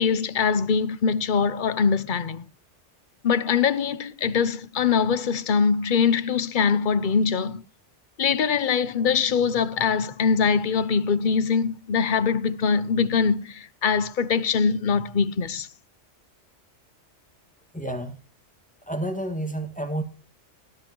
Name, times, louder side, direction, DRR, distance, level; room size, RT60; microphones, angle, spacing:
voice 1, 0.0-2.4 3.2-7.6 8.2-15.7, left 6 dB, 50° left, 0.8 m, -23 dB
voice 2, 17.7-18.1 18.9-20.0, right 1 dB, 5° left, 1.7 m, -29 dB
19.0 x 11.0 x 3.0 m
omnidirectional pair, 1.2 m